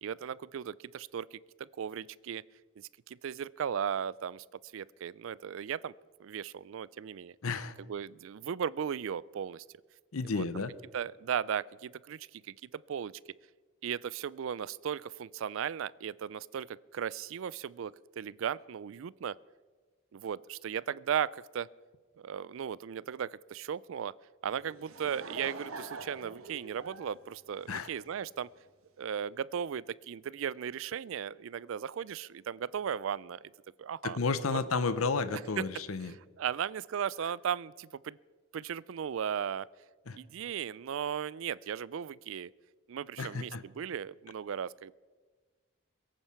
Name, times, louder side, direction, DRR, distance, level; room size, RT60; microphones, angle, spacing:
voice 1, 0.0-2.4 3.1-4.4 4.7-5.9 6.2-7.4 7.9-9.6 10.3-10.4 10.9-13.1 13.8-19.3 20.1-21.7 22.2-24.1 24.4-28.5 29.0-33.4 33.8-34.2 36.0-38.2 38.5-39.7 40.1-42.5 42.9-44.9, right 8 dB, 70° right, 22 dB, 0.3 m, -36 dB
voice 2, 7.4-7.7 10.1-10.7 27.7-27.9 34.0-36.2 40.1-40.2 43.2-43.6, left 4 dB, 85° left, 14 dB, 0.8 m, -32 dB
Laughter / Crowd, 24.5-28.3, right 3 dB, 85° right, 1.3 m, -45 dB
22.0 x 8.9 x 5.7 m, 1.4 s
head